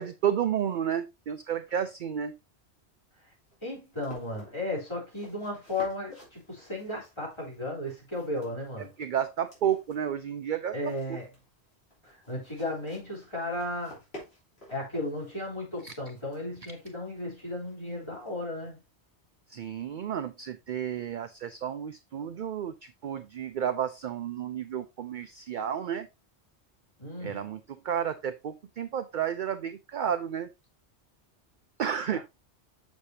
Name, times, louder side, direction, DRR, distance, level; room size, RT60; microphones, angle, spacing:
voice 1, 0.0-2.3 9.0-11.2 15.8-15.9 19.5-26.1 27.2-30.5 31.8-32.2, right 9 dB, 55° right, 0.6 m, -31 dB
sound 1, 2.5-18.8, equal, 65° left, 3.8 m, -54 dB
voice 2, 3.6-8.9 10.7-11.3 12.0-14.0 14.7-18.8 27.0-27.5 32.1-32.2, left 2 dB, 25° left, 3.7 m, -35 dB
7.2 x 6.6 x 2.8 m
omnidirectional pair, 1.2 m